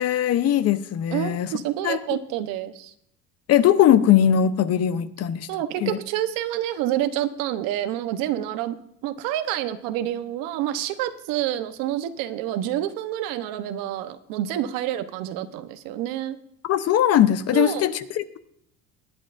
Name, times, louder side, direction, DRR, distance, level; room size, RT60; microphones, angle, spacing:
voice 1, 0.0-1.5 1.8-2.0 3.5-5.5 5.8-6.0 16.6-18.4, left 10 dB, 45° left, 13 dB, 0.8 m, -20 dB
voice 2, 1.1-2.9 5.5-8.7 9.0-16.4 17.5-17.9, right 12 dB, 90° right, 11 dB, 1.0 m, -28 dB
19.5 x 9.9 x 2.6 m, 0.73 s
cardioid pair, 140°, 33 cm